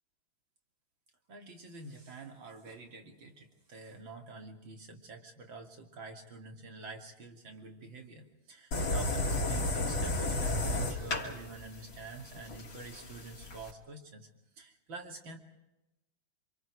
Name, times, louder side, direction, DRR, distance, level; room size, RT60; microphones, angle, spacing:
voice 1, 1.3-14.3 14.6-15.4, right 3 dB, 70° right, 3 dB, 3.6 m, -47 dB
sound 1, 8.7-13.7, left 2 dB, 70° left, 3.7 m, -33 dB
28.0 x 26.5 x 4.9 m, 0.94 s
omnidirectional pair, 2.2 m